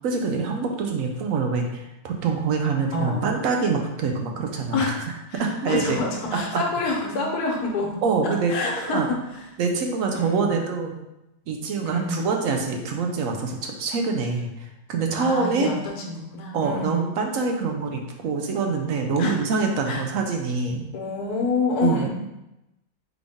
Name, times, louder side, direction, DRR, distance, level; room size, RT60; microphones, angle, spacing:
voice 1, 0.0-4.8 5.4-6.0 6.5-6.6 8.0-8.5 8.9-9.1 9.6-11.0 11.5-15.7 16.5-20.9 21.8-22.1, right 4 dB, 70° right, 2 dB, 0.9 m, -25 dB
voice 2, 2.9-3.3 4.7-5.0 5.3-8.0 8.2-9.2 10.1-10.5 11.8-12.3 15.2-17.1 19.2-19.4 19.9-20.0 20.9-22.1, left 3 dB, 85° left, 0 dB, 1.4 m, -27 dB
3.9 x 3.5 x 3.5 m, 0.91 s
omnidirectional pair, 1.6 m